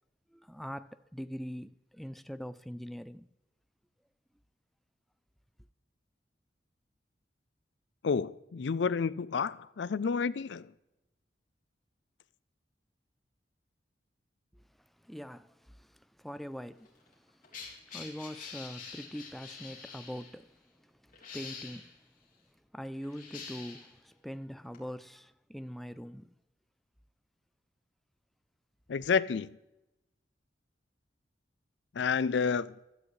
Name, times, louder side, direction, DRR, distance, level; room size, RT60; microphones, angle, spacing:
voice 1, 0.3-3.3 15.0-16.9 17.3-20.6 20.8-21.9 22.7-26.3, equal, ahead, 0.3 m, -43 dB
voice 2, 8.0-10.7 28.9-29.6 31.9-32.7, left 5 dB, 75° left, 0.4 m, -30 dB
sound 1, 16.8-20.3 21.1-21.9 23.0-24.0 24.7-24.8, left 5 dB, 50° left, 3.4 m, -46 dB
16.5 x 12.5 x 3.2 m
head